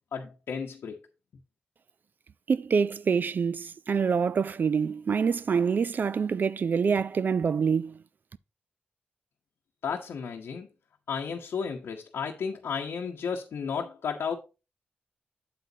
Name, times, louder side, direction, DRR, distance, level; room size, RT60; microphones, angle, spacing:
voice 1, 0.1-0.9 9.8-10.7 11.1-14.4, left 6 dB, 85° left, 0.8 m, -33 dB
voice 2, 2.5-8.0, right 6 dB, 55° right, 0.3 m, -26 dB
8.1 x 7.6 x 2.7 m
cardioid pair, 85°, 4 cm